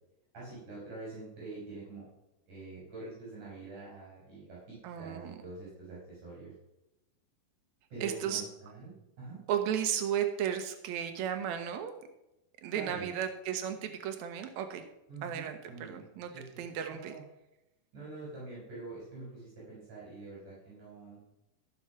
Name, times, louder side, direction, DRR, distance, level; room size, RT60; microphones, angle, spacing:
voice 1, 0.3-2.1 2.5-6.5 7.9-9.4 12.7-13.1 15.1-16.0 16.3-16.6 16.9-17.2 17.9-21.2, right 3 dB, 55° right, -7 dB, 5.8 m, -45 dB
voice 2, 4.8-5.3 8.0-8.4 9.5-11.9 12.6-14.8 15.2-17.1, right 9 dB, 85° right, 7 dB, 1.6 m, -34 dB
13.5 x 5.9 x 5.8 m, 0.91 s
omnidirectional pair, 4.4 m